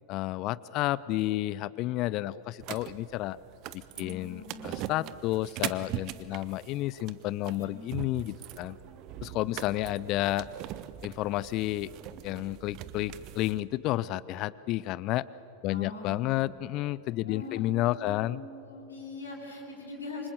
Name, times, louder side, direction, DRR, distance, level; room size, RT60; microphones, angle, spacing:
voice 1, 0.1-3.4 3.7-8.8 9.2-10.5 11.0-11.9 12.2-15.3 15.6-18.4, left 16 dB, 40° left, 20 dB, 0.5 m, -31 dB
sound 1, 2.6-13.6, right 13 dB, 40° right, 1.0 m, -41 dB
voice 2, 3.9-5.0 7.5-7.7 15.7-16.5 17.3-17.6 18.0-20.3, left 3 dB, 70° left, -3 dB, 8.0 m, -42 dB
27.5 x 25.5 x 8.2 m, 2.9 s
figure-of-eight pair, 90°, 0 cm